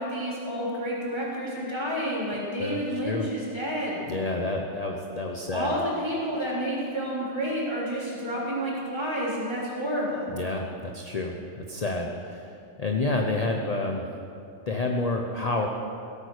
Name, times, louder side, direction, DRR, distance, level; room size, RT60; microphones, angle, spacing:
voice 1, 0.0-4.1 5.5-10.3, equal, 20° right, -7 dB, 3.9 m, -30 dB
voice 2, 2.6-3.3 4.1-5.7 10.3-12.5 12.8-14.1 14.7-15.7, left 2 dB, 35° left, 2 dB, 0.9 m, -29 dB
17.0 x 8.9 x 6.6 m, 2.6 s
omnidirectional pair, 1.3 m